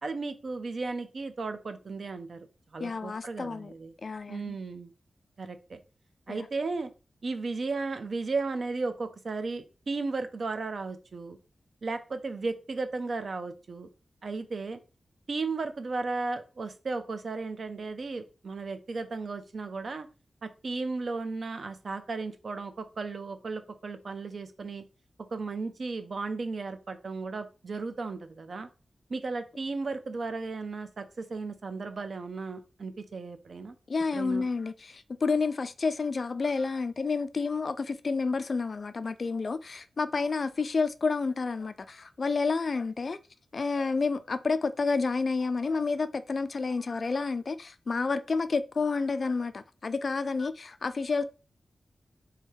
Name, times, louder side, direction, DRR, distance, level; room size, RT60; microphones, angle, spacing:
voice 1, 0.0-2.5 2.7-3.9 4.3-4.9 5.4-5.8 6.3-6.9 7.2-11.4 11.8-13.9 14.2-14.8 15.3-20.1 20.4-24.8 25.3-28.7 29.1-33.7 34.1-34.4, right 3 dB, 55° right, 0.6 m, -35 dB
voice 2, 2.8-3.7 4.0-4.6 6.3-6.5 33.9-43.2 43.5-51.2, left 4 dB, 50° left, 0.3 m, -30 dB
3.4 x 3.3 x 4.6 m
wide cardioid pair, 135°, 0 cm